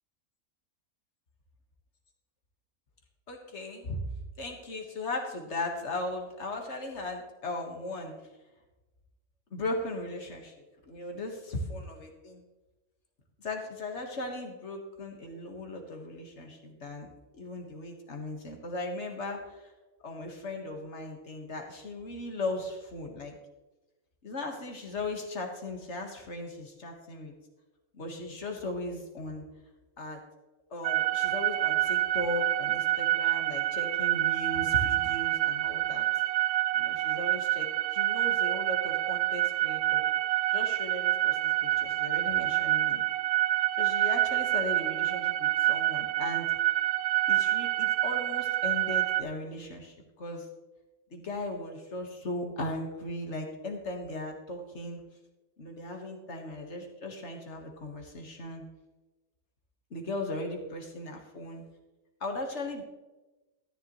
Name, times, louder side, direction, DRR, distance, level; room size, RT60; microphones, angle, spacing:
voice 1, 3.3-4.0 4.4-8.1 9.5-10.5 10.8-12.4 13.4-17.1 17.3-19.6 20.0-23.4 24.2-27.3 27.9-29.5 30.0-30.2 30.7-36.1 36.7-40.0 40.5-43.0 43.8-46.5 47.3-50.5 51.1-55.0 55.6-58.6 59.9-61.6 62.2-62.8, left 2 dB, 50° left, 2 dB, 1.8 m, -37 dB
sound 1, 30.8-49.2, right 14 dB, 80° right, 1.1 m, -27 dB
13.0 x 10.0 x 3.1 m, 1.1 s
omnidirectional pair, 1.6 m